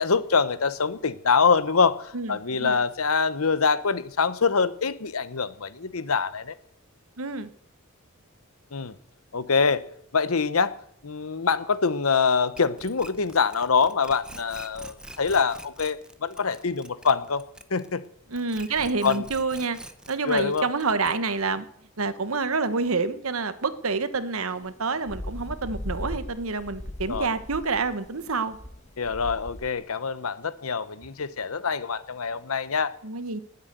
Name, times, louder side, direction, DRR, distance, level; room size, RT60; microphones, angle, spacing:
voice 1, 0.0-6.5 8.7-8.9 9.3-9.8 10.1-10.7 11.0-17.4 17.7-18.0 19.0-19.2 20.2-20.7 27.1-27.3 29.0-32.9, left 5 dB, 85° left, 15 dB, 1.0 m, -24 dB
voice 2, 2.1-2.8 7.2-7.5 18.3-19.8 20.1-21.6 22.0-28.6 33.0-33.4, right 4 dB, 80° right, 12 dB, 1.2 m, -28 dB
sound 1, 12.6-18.1 18.3-21.4, right 1 dB, 5° right, 0.9 m, -44 dB
sound 2, 24.6-29.7, left 1 dB, 35° left, 1.3 m, -38 dB
19.5 x 8.1 x 8.1 m, 0.70 s
head